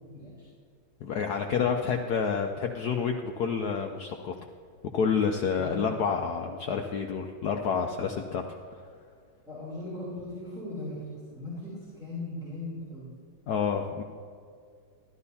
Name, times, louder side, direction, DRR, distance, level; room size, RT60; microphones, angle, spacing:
voice 1, 0.1-0.5 5.5-5.8 9.5-13.1, left 2 dB, ahead, -9 dB, 2.9 m, -38 dB
voice 2, 1.0-4.3 4.9-8.4 8.7-8.8 13.5-14.0, left 6 dB, 75° left, 3 dB, 0.9 m, -29 dB
13.5 x 12.5 x 2.7 m, 2.2 s
omnidirectional pair, 2.3 m